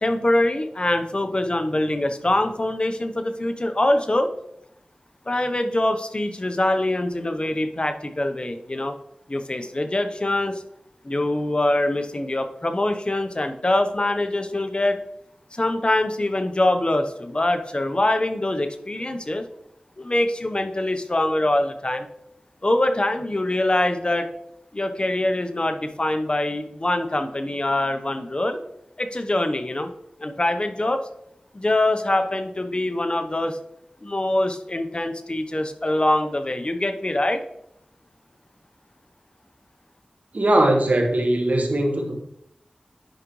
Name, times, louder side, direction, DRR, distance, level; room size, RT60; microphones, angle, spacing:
voice 1, 0.0-4.3 5.3-9.0 9.3-10.6 11.0-15.0 15.5-19.5 20.0-22.1 22.6-24.3 24.7-28.6 29.0-29.9 30.2-31.0 31.5-33.6 34.0-37.4, left 1 dB, 35° left, 7 dB, 0.8 m, -24 dB
voice 2, 40.3-42.2, right 1 dB, 65° right, 3 dB, 1.3 m, -20 dB
10.5 x 5.0 x 3.1 m, 0.74 s
wide cardioid pair, 55°, 3 cm